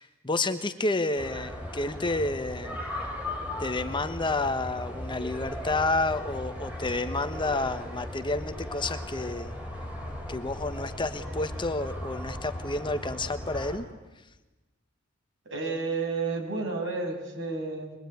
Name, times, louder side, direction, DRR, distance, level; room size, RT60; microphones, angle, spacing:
voice 1, 0.0-2.8 3.6-9.5 10.3-13.8, left 2 dB, 25° left, 8 dB, 1.2 m, -30 dB
sound 1, 1.2-13.8, left 1 dB, 5° right, 5.0 m, -37 dB
voice 2, 15.5-18.0, right 3 dB, 65° right, 2 dB, 7.1 m, -31 dB
25.5 x 22.0 x 9.4 m, 1.1 s
head